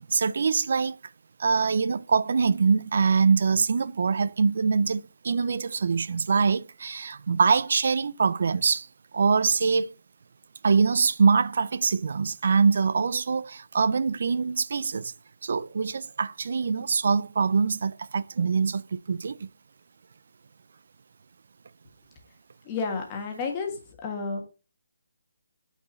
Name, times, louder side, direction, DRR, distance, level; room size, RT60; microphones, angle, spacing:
voice 1, 0.1-1.0 1.4-8.9 9.1-9.9 10.6-15.1 15.4-19.5, right 5 dB, 50° right, 0.4 m, -24 dB
voice 2, 22.6-24.4, left 4 dB, 15° left, 1.5 m, -31 dB
8.9 x 4.5 x 4.2 m
hypercardioid pair, 175°, 0 cm